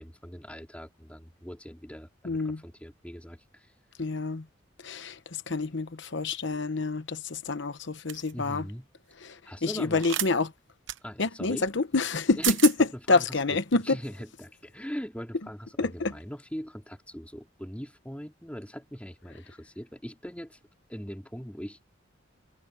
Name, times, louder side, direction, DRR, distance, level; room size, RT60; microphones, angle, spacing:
voice 1, 0.0-3.7 8.3-8.9 9.5-10.1 11.0-11.7 12.3-20.6 20.9-21.9, equal, 5° left, 4.4 m, -41 dB
voice 2, 2.2-2.6 4.0-4.4 4.8-5.2 5.5-8.6 9.2-9.3 9.6-10.5 11.2-12.7 13.1-13.8 15.8-16.1, left 3 dB, 65° left, 1.0 m, -27 dB
sound 1, 8.1-8.3 10.0-10.3 10.9-11.0 12.1-12.2 12.4-12.8, right 13 dB, 70° right, 1.0 m, -29 dB
head